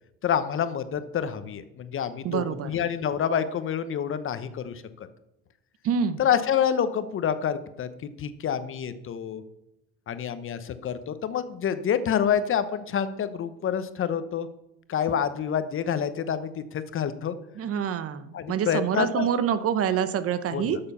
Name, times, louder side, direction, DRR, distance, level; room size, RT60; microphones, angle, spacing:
voice 1, 0.2-5.1 6.2-9.4 10.1-14.5 14.9-17.4 18.3-19.3 20.5-20.6, left 8 dB, 40° left, 12 dB, 0.9 m, -27 dB
voice 2, 2.2-2.7 5.8-6.2 17.6-20.8, right 8 dB, 45° right, 13 dB, 0.9 m, -26 dB
12.5 x 7.0 x 5.5 m, 0.89 s
supercardioid pair, 105°, 32 cm